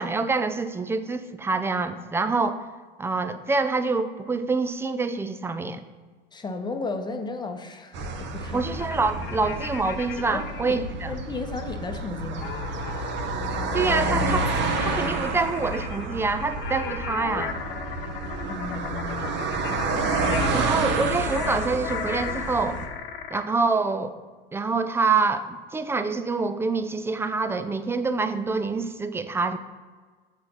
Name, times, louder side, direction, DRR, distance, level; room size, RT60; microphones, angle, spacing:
voice 1, 0.0-2.6 3.0-5.8 8.5-11.2 13.7-14.5 14.8-17.6 20.5-22.8 23.3-24.2 24.5-29.6, right 4 dB, 10° right, 10 dB, 0.4 m, -26 dB
voice 2, 6.3-8.6 10.6-10.8 11.1-12.5 18.4-19.9, left 3 dB, 15° left, 6 dB, 0.8 m, -34 dB
sound 1, 7.9-22.9, right 3 dB, 35° right, 1.1 m, -29 dB
sound 2, 8.7-10.8 12.4-23.5, left 7 dB, 70° left, 0.7 m, -37 dB
7.6 x 4.5 x 5.6 m, 1.4 s
figure-of-eight pair, 75°, 30 cm